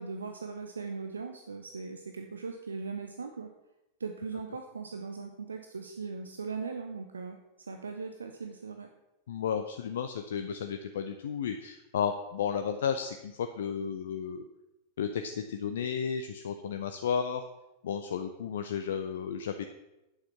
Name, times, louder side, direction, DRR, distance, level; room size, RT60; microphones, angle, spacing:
voice 1, 0.0-3.5 4.0-7.4 7.7-8.9, right 4 dB, 75° right, 5 dB, 0.7 m, -39 dB
voice 2, 9.3-14.4 15.0-17.4 17.8-19.6, left 7 dB, 60° left, 7 dB, 0.6 m, -33 dB
8.9 x 7.2 x 5.7 m, 0.96 s
figure-of-eight pair, 90°, 0 cm